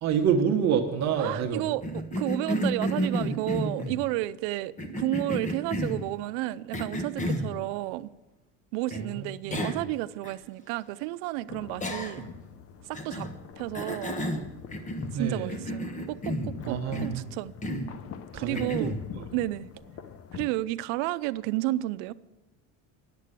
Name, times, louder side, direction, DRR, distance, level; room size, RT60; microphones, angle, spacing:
voice 1, 0.0-1.6 8.9-9.6 15.1-15.6 16.6-17.3 18.3-19.2, right 7 dB, 50° right, 1.2 m, -28 dB
voice 2, 1.2-8.1 8.7-12.2 12.8-13.3 13.6-14.2 15.2-17.5 18.4-19.0 19.3-19.7 20.3-22.1, right 16 dB, 85° right, 0.6 m, -32 dB
Cough, 1.8-4.0 4.8-6.1 6.7-7.5 8.9-9.0 9.5-9.9 10.2-10.3 11.8-12.4 12.9-13.3 13.7-15.2 15.5-16.6 16.9-17.2 17.6-17.9 18.5-19.0, equal, 20° left, 1.3 m, -31 dB
sound 1, 11.5-20.5, left 7 dB, 40° left, 0.8 m, -45 dB
10.5 x 7.5 x 8.2 m
cardioid pair, 130°, 35 cm